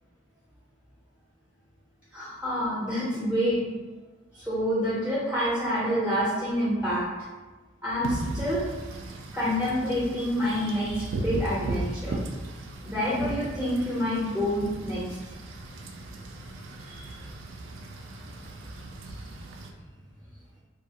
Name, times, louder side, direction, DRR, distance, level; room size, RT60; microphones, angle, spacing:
voice 1, 2.1-3.7 4.3-7.1 7.8-8.6 9.3-12.2 12.8-15.0 16.9-17.2, equal, 5° right, -9 dB, 0.6 m, -27 dB
Wind / Rain, 8.0-19.7, right 2 dB, 70° right, 0.3 m, -37 dB
2.3 x 2.3 x 2.8 m, 1.2 s
head